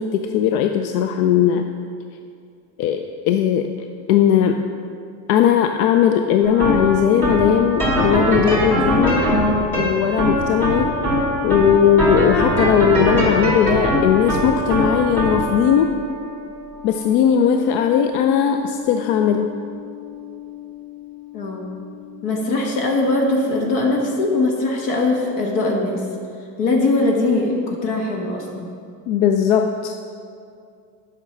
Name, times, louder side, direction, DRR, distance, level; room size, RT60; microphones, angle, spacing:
voice 1, 0.0-1.7 2.8-3.7 4.1-4.7 5.3-9.3 9.8-11.0 11.4-16.0 16.8-19.5 29.1-30.0, left 8 dB, 80° left, 6 dB, 0.6 m, -18 dB
sound 1, 6.4-23.6, equal, 5° left, 2.3 m, -23 dB
voice 2, 21.3-21.7 22.2-26.0 26.6-28.7, left 2 dB, 60° left, 0 dB, 1.3 m, -21 dB
8.1 x 6.0 x 5.7 m, 2.4 s
cardioid pair, 145°, 45 cm